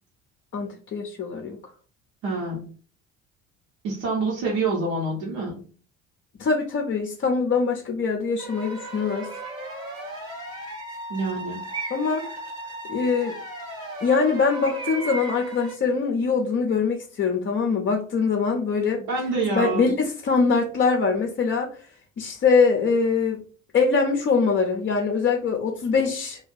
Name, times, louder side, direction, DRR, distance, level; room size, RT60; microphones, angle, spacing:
voice 1, 0.5-1.6 6.4-9.3 11.9-12.2 12.9-13.4 14.0-19.0 19.5-21.7 22.2-23.4 23.7-26.4, left 5 dB, 30° left, 1 dB, 0.6 m, -23 dB
voice 2, 2.2-2.6 3.8-5.6 11.1-11.6 19.1-19.9, right 3 dB, 65° right, -3 dB, 1.1 m, -26 dB
sound 1, 8.4-15.7, right 1 dB, 90° right, 0.8 m, -37 dB
Bird, 9.3-9.7 10.5-11.1 11.7-12.3 14.6-15.6, right 4 dB, 15° right, 0.3 m, -37 dB
2.5 x 2.4 x 3.8 m, 0.41 s
figure-of-eight pair, 55°, 39 cm